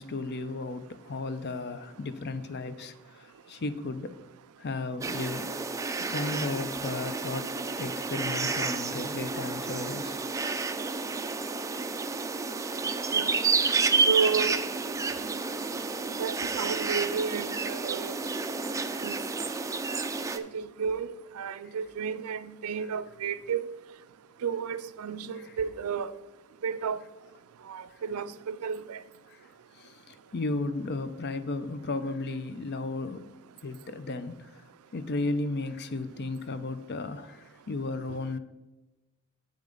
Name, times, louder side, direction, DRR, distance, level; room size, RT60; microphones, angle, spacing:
voice 1, 0.0-4.1 4.6-5.6 6.1-7.5 7.8-10.2 10.6-10.8 29.8-33.3 33.6-34.4 34.9-38.4, left 3 dB, 50° left, 12 dB, 0.5 m, -34 dB
sound 1, 5.0-20.4, right 4 dB, 15° right, 0.3 m, -30 dB
voice 2, 14.1-14.6 16.2-18.2 19.0-19.2 20.3-23.7 24.4-26.1 26.6-27.0 27.7-29.0, right 6 dB, 85° right, 13 dB, 0.4 m, -32 dB
7.9 x 7.1 x 3.8 m, 1.0 s
head